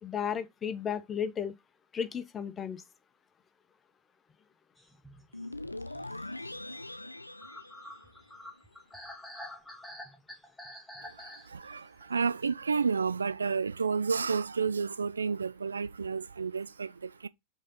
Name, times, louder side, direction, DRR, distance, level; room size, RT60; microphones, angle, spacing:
voice 1, 0.0-1.5 1.9-2.8, left 8 dB, 20° left, 0.8 m, -34 dB
sound 1, 4.8-12.5, left 1 dB, ahead, 1.4 m, -48 dB
sound 2, 5.3-8.6, left 1 dB, 85° left, 0.5 m, -42 dB
voice 2, 11.0-17.3, right 5 dB, 75° right, 0.4 m, -31 dB
5.2 x 3.9 x 5.5 m
figure-of-eight pair, 90°, 0 cm